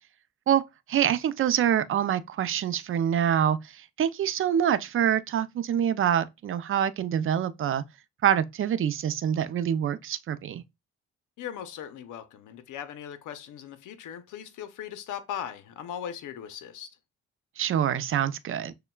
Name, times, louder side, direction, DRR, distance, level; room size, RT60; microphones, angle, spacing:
voice 1, 0.9-7.8 8.2-10.6 17.6-18.7, right 9 dB, 45° right, 0.4 m, -25 dB
voice 2, 11.4-17.0, left 9 dB, 80° left, 0.7 m, -39 dB
6.5 x 2.2 x 2.3 m
cardioid pair, 90°, 30 cm